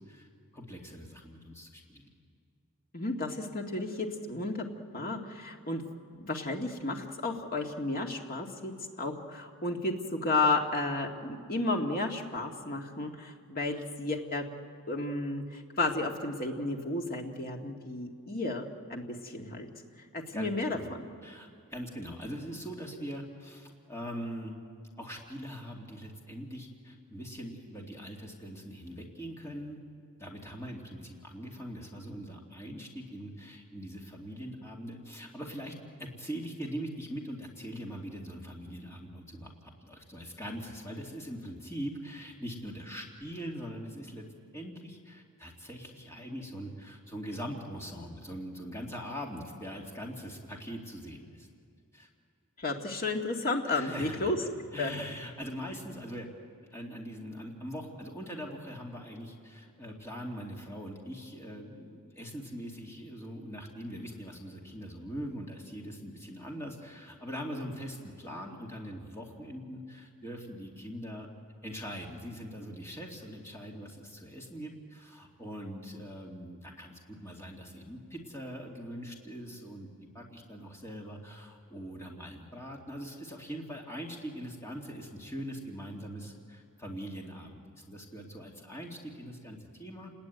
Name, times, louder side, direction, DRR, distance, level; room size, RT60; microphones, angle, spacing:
voice 1, 0.5-2.1 20.3-20.9 21.2-24.6 25.0-29.8 30.2-44.3 44.5-51.5 51.9-52.1 53.7-54.3 54.7-56.3 56.7-71.3 71.6-90.1, equal, 10° left, -1 dB, 2.6 m, -42 dB
voice 2, 2.9-4.7 4.9-5.8 6.2-8.7 9.0-14.5 14.9-19.7 20.1-21.0 52.6-54.4 54.8-54.9, left 2 dB, 40° left, 2 dB, 2.1 m, -32 dB
29.5 x 20.5 x 9.4 m, 2.2 s
head